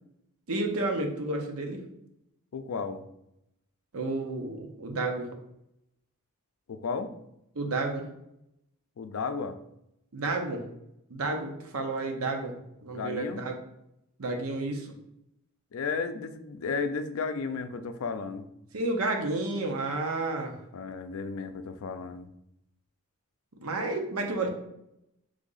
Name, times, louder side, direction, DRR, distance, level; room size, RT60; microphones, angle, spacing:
voice 1, 0.5-1.8 3.9-5.3 7.5-8.1 10.1-10.6 11.1-12.6 12.8-13.5 14.2-14.9 18.7-20.6 23.6-24.5, right 2 dB, 75° right, 3 dB, 0.8 m, -31 dB
voice 2, 2.5-3.0 6.7-7.1 9.0-9.6 12.9-13.4 15.7-18.5 20.7-22.3, left 5 dB, 65° left, 9 dB, 0.4 m, -33 dB
3.7 x 3.4 x 3.9 m, 0.80 s
head